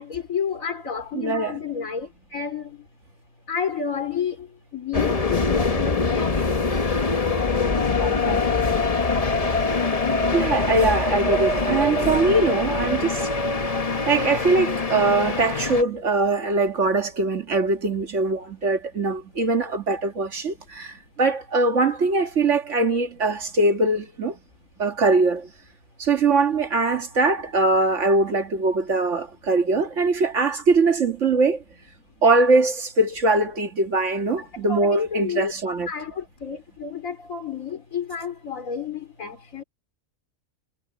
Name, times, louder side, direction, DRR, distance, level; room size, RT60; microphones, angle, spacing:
voice 1, 0.0-2.8 3.5-4.5 4.7-6.6 34.4-35.5 35.9-39.6, left 6 dB, 75° left, 3.8 m, -30 dB
voice 2, 1.1-1.6 8.0-8.4 10.3-13.3 14.1-24.4 24.8-25.5 26.0-31.6 32.2-35.9, right 3 dB, 60° right, 2.0 m, -22 dB
sound 1, 4.9-15.8, left 3 dB, 30° left, 1.1 m, -23 dB
omnidirectional pair, 1.4 m